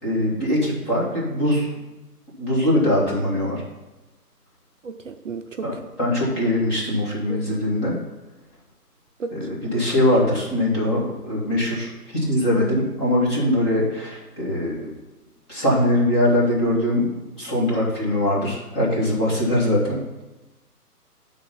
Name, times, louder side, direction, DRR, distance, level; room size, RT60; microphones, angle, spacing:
voice 1, 0.0-1.7 2.4-3.6 5.6-8.0 9.3-14.9 15.5-20.0, left 1 dB, 15° left, -5 dB, 1.7 m, -22 dB
voice 2, 4.8-5.8 7.3-7.4 9.2-9.5, right 4 dB, 55° right, 6 dB, 0.5 m, -34 dB
8.8 x 4.0 x 5.6 m, 1.0 s
hypercardioid pair, 160°, 48 cm